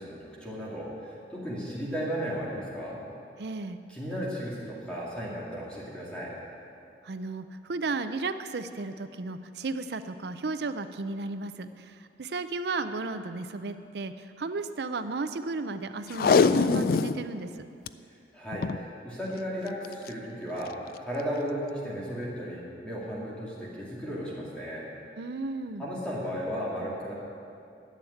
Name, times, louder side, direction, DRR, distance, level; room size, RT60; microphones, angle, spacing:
voice 1, 0.0-3.0 3.9-6.3 18.1-24.8 25.8-27.1, equal, 5° left, -7 dB, 2.5 m, -35 dB
voice 2, 3.4-3.8 7.0-17.7 25.2-25.9, right 3 dB, 60° right, 11 dB, 0.5 m, -34 dB
Packing tape duct tape, 16.1-17.2 17.6-17.7 17.9-18.0 18.5-18.8 19.8-20.1 20.7-20.8, left 5 dB, 50° left, 0.3 m, -23 dB
11.5 x 7.2 x 9.7 m, 2.5 s
head